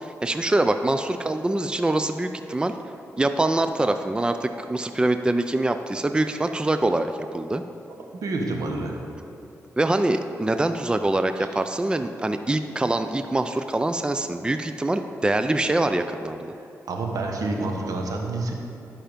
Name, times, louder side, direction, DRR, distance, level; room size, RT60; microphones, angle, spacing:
voice 1, 0.0-2.7 3.2-7.6 9.8-16.5, right 2 dB, 15° right, 8 dB, 0.4 m, -24 dB
voice 2, 8.1-9.0 16.9-18.5, right 2 dB, 80° right, 1 dB, 1.3 m, -28 dB
11.5 x 5.6 x 5.1 m, 2.8 s
cardioid pair, 65°, 6 cm